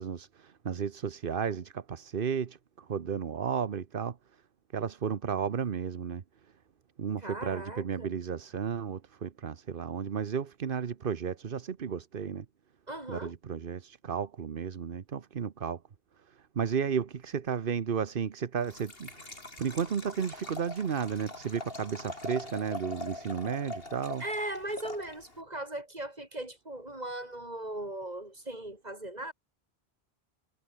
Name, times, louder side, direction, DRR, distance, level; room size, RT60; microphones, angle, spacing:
voice 1, 0.0-4.2 4.7-6.2 7.0-12.4 13.1-15.8 16.5-19.3 19.6-24.2, right 7 dB, 60° right, 1.1 m, -33 dB
voice 2, 7.2-8.1 12.9-13.3 24.2-29.3, right 1 dB, 40° right, 6.2 m, -38 dB
Liquid, 18.6-25.4, left 2 dB, 65° left, 4.2 m, -43 dB
omnidirectional pair, 1.1 m